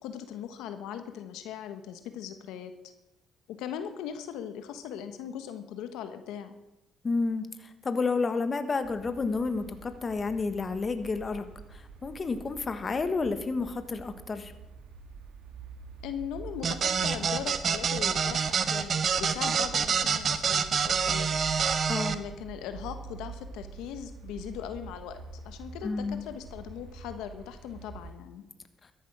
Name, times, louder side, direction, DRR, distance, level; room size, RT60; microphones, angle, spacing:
voice 1, 0.0-2.7 3.5-6.5 16.0-21.4 22.1-28.4, left 9 dB, 90° left, 9 dB, 1.2 m, -39 dB
voice 2, 7.0-14.5 21.9-22.2 25.8-26.2, left 4 dB, 35° left, 9 dB, 1.3 m, -31 dB
sound 1, 8.8-28.1, right 5 dB, 80° right, 2.2 m, -46 dB
sound 2, 16.6-22.1, right 6 dB, 50° right, 1.1 m, -27 dB
13.5 x 10.5 x 6.1 m, 0.97 s
cardioid pair, 85°, 0 cm